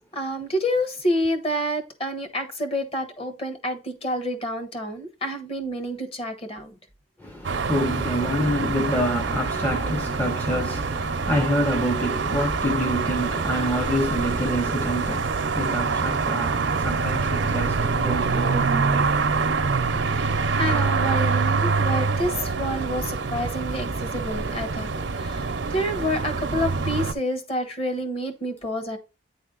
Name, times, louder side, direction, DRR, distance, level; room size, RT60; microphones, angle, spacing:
voice 1, 0.1-6.7 20.0-24.9 25.2-29.0, equal, 35° left, 1.2 m, -28 dB
voice 2, 7.2-19.2 19.9-20.0, equal, 10° left, 0.6 m, -27 dB
sound 1, 7.4-27.1, right 4 dB, 75° right, 0.6 m, -25 dB
9.1 x 3.4 x 3.8 m
head